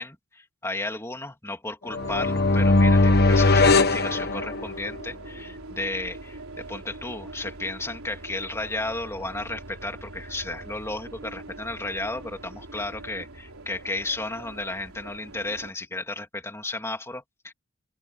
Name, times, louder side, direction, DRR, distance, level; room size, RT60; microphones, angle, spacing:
voice 1, 0.0-17.5, left 2 dB, 10° left, 3.1 m, -33 dB
sound 1, 1.9-4.9, left 2 dB, 45° left, 1.5 m, -19 dB
sound 2, 2.0-15.7, right 2 dB, 75° right, 4.1 m, -42 dB
open air
head